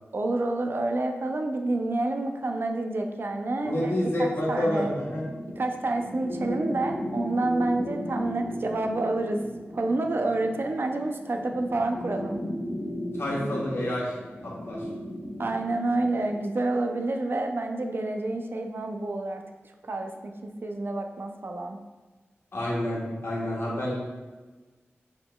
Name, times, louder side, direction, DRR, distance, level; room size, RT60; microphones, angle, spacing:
voice 1, 0.1-3.9 4.2-4.9 5.6-9.4 9.7-12.4 15.4-19.4 19.9-21.8, right 2 dB, 55° right, 4 dB, 0.4 m, -28 dB
voice 2, 3.6-5.2 13.2-14.1 14.4-14.9 22.5-24.0, left 1 dB, 65° left, -5 dB, 1.2 m, -28 dB
sound 1, 4.1-16.5, equal, 25° left, 0.5 m, -36 dB
4.1 x 3.8 x 2.2 m, 1.3 s
wide cardioid pair, 70°, 5 cm